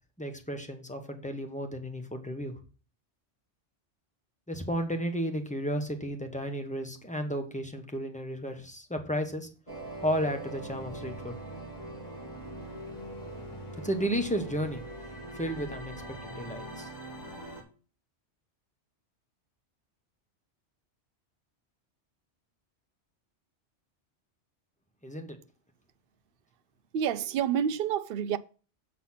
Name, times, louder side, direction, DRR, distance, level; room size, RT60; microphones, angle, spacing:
voice 1, 0.2-2.5 4.5-9.5 10.0-11.4 13.7-14.8 15.3-16.9 25.0-25.4, equal, 5° left, 1.0 m, -33 dB
sound 1, 9.7-17.6, right 1 dB, 35° left, 2.1 m, -42 dB
voice 2, 26.9-28.4, right 8 dB, 60° right, 0.6 m, -28 dB
7.5 x 4.1 x 5.8 m
omnidirectional pair, 1.2 m